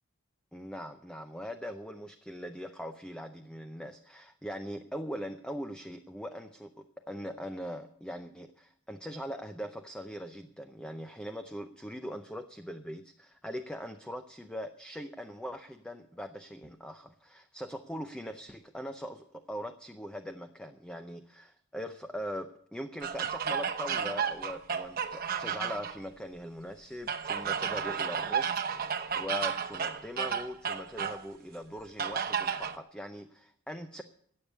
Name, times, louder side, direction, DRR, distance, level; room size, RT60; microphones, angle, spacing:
voice 1, 0.5-34.0, equal, 5° left, 8 dB, 0.6 m, -41 dB
sound 1, 23.0-26.0 27.1-31.2 32.0-32.8, right 7 dB, 45° right, 1.0 m, -32 dB
17.0 x 7.2 x 8.2 m, 0.67 s
head